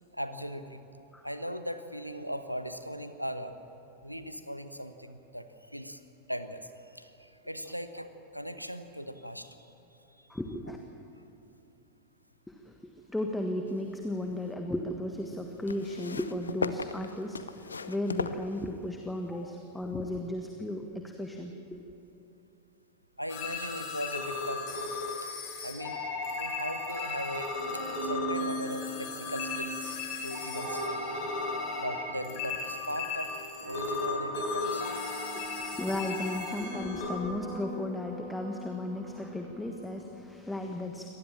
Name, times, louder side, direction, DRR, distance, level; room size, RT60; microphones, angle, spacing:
voice 1, 0.1-0.8 1.2-3.5 4.0-6.0 6.3-9.6 10.2-10.3 23.2-24.9 25.2-25.3 25.6-26.0 26.4-29.9 30.2-31.0 31.8-35.0, equal, 90° right, 10 dB, 1.1 m, -39 dB
voice 2, 10.3-10.8 12.5-12.8 13.1-21.8 35.3-41.1, left 1 dB, 5° left, 3 dB, 1.5 m, -35 dB
sound 1, 13.7-14.5 15.6-19.1 20.0-20.1, left 4 dB, 75° left, 0.7 m, -37 dB
sound 2, 23.3-37.1, left 4 dB, 45° left, 4.6 m, -36 dB
sound 3, 27.5-40.4, right 1 dB, 65° right, 6.9 m, -41 dB
24.5 x 19.0 x 7.4 m, 3.0 s
figure-of-eight pair, 90°, 0 cm